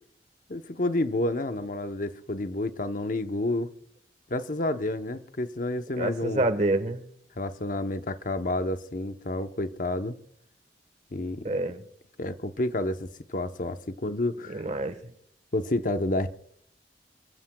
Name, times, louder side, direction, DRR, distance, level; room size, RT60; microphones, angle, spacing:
voice 1, 0.5-3.7 4.3-6.4 7.4-10.2 11.1-11.5 12.2-14.6 15.5-16.3, left 1 dB, 50° left, 0.9 m, -29 dB
voice 2, 5.9-7.0 11.4-11.8 14.5-15.1, right 2 dB, 40° right, 1.3 m, -27 dB
29.0 x 15.0 x 2.3 m
head